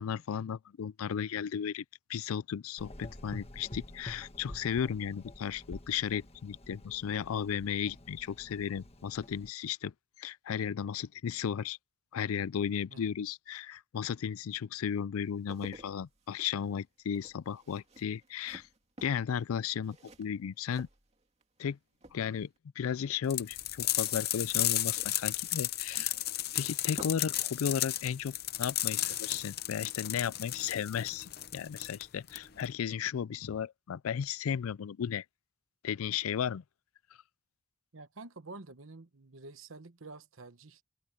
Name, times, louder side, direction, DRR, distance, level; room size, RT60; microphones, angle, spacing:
voice 1, 0.0-11.8 12.1-18.7 19.0-20.9 21.6-21.8 22.1-22.5 22.8-26.1 26.5-35.2 35.8-36.6, left 8 dB, 85° left, 0.4 m, -35 dB
Gurgling / Engine, 2.8-9.5, left 1 dB, 30° left, 1.5 m, -48 dB
sound 1, 15.2-21.7 21.9-22.6 23.9-27.4 27.7-27.8, right 1 dB, 30° right, 2.4 m, -53 dB
sound 2, 23.3-32.7, left 14 dB, 45° left, 0.7 m, -33 dB
voice 2, 37.9-40.8, right 3 dB, 70° right, 1.1 m, -49 dB
head